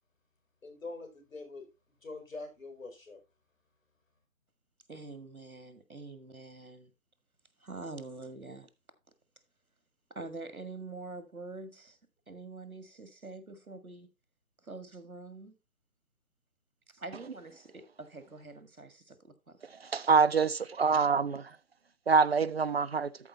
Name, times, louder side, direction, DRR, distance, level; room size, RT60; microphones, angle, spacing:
voice 1, 0.6-1.7 2.0-3.2, left 3 dB, 65° left, 4.2 m, -44 dB
voice 2, 4.9-6.9 7.6-8.7 10.1-12.0 12.3-14.1 14.6-15.5 16.9-19.6, right 3 dB, 85° right, 1.8 m, -45 dB
voice 3, 19.9-21.5 22.1-23.1, right 5 dB, 45° right, 0.5 m, -25 dB
13.0 x 4.5 x 4.1 m
figure-of-eight pair, 150°, 42 cm